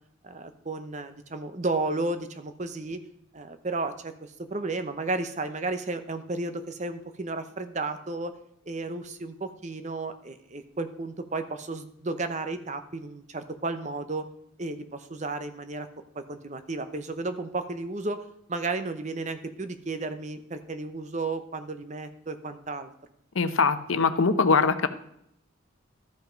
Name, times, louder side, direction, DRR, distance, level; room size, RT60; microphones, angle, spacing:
voice 1, 0.2-3.0 3.3-8.3 8.7-14.3 14.6-15.9 16.2-18.2 18.5-22.9, right 3 dB, 35° right, 9 dB, 0.7 m, -33 dB
voice 2, 23.3-24.9, left 4 dB, 75° left, 11 dB, 0.7 m, -22 dB
12.5 x 5.8 x 5.1 m, 0.74 s
head